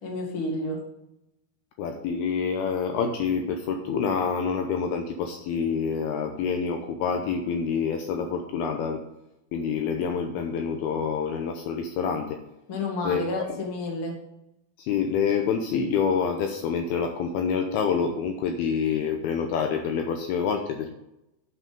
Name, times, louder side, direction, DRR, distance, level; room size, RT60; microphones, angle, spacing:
voice 1, 0.0-0.8 12.7-14.2, left 2 dB, 40° left, 0 dB, 2.4 m, -30 dB
voice 2, 1.8-9.0 9.5-12.4 13.0-13.5 14.8-20.9, left 6 dB, 75° left, 4 dB, 2.6 m, -27 dB
11.0 x 6.0 x 5.3 m, 0.87 s
omnidirectional pair, 4.8 m